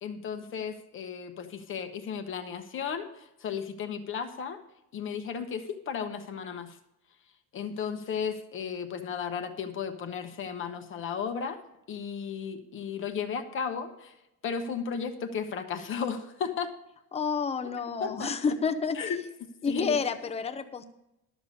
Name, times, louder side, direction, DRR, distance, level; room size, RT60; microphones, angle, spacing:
voice 1, 0.0-4.6 4.9-6.8 7.5-11.6 11.9-14.1 14.4-16.7 18.0-18.3 18.9-19.2 19.6-20.0, left 6 dB, 35° left, 6 dB, 0.9 m, -34 dB
voice 2, 17.1-19.0 19.6-20.9, left 5 dB, 20° left, 8 dB, 0.6 m, -29 dB
12.0 x 6.6 x 5.3 m, 0.88 s
cardioid pair, 160°, 35 cm